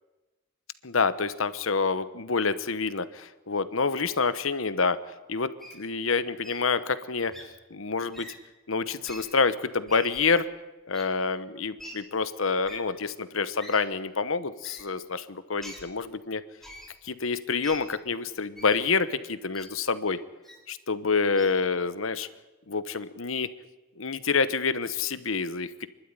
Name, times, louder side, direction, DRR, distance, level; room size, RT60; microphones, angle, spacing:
voice 1, 0.8-5.0 5.3-7.3 7.7-8.3 8.7-10.5 10.9-16.4 17.0-20.2 20.7-22.3 22.7-23.5 24.0-25.9, left 4 dB, 80° left, 13 dB, 1.1 m, -27 dB
Wild animals, 5.6-5.8 6.4-6.6 7.3-7.4 8.1-8.3 9.0-9.2 9.9-10.2 10.9-11.0 11.8-11.9 12.6-12.8 13.6-13.8 14.6-14.8 15.6-15.8 16.6-16.9 17.6-17.8 18.6-18.8 19.5-19.7 20.4-20.6 21.4-21.5, equal, ahead, 3.8 m, -44 dB
28.0 x 12.0 x 9.9 m, 1.1 s
head